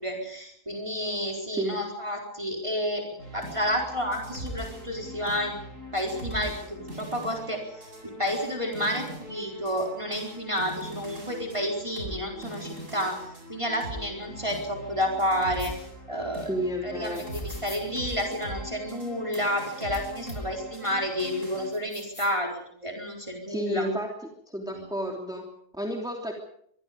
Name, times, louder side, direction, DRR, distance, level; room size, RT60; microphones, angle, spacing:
voice 1, 0.0-3.0 3.3-5.6 5.9-13.2 13.5-15.7 16.1-16.5 16.8-23.9 24.6-24.8, equal, 20° right, 1 dB, 4.5 m, -30 dB
voice 2, 1.5-1.8 16.5-17.3 23.5-24.1 24.5-26.3, equal, 5° right, 1 dB, 3.0 m, -31 dB
sound 1, 3.2-21.7, equal, 75° right, 8.5 m, -41 dB
sound 2, 15.6-15.7 17.1-17.8 19.3-19.4 19.9-20.0 20.3-20.4 21.7-22.4, left 2 dB, 90° left, 5.4 m, -45 dB
25.0 x 23.5 x 5.2 m, 0.67 s
omnidirectional pair, 1.4 m